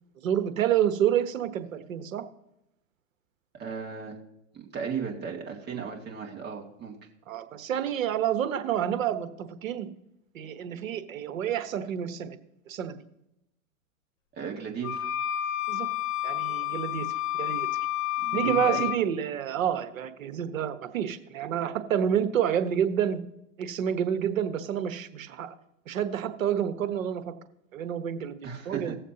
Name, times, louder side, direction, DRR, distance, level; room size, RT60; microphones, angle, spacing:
voice 1, 0.2-2.2 7.3-9.9 10.3-12.4 12.7-12.9 15.7-15.9 16.2-17.7 18.3-23.2 23.6-25.5 25.9-27.3 27.7-29.0, right 9 dB, 75° right, 9 dB, 1.3 m, -29 dB
voice 2, 3.6-4.2 4.5-7.0 14.4-15.1 18.2-18.8 28.4-29.0, right 6 dB, 25° right, 0 dB, 2.2 m, -36 dB
sound 1, 14.8-19.0, left 13 dB, 65° left, 1.2 m, -30 dB
18.5 x 7.2 x 2.9 m, 0.83 s
hypercardioid pair, 125°, 40 cm